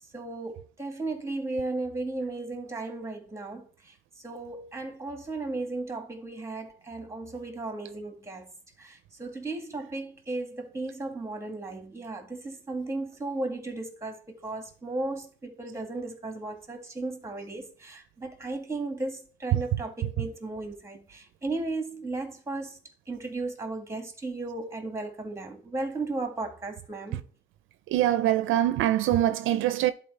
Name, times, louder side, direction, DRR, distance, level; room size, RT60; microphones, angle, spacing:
voice 1, 0.1-8.5 8.8-22.8 23.1-27.2, right 2 dB, 15° right, 1.8 m, -35 dB
voice 2, 27.9-29.9, right 12 dB, 85° right, 0.5 m, -23 dB
11.0 x 4.2 x 3.2 m
cardioid pair, 90°, 20 cm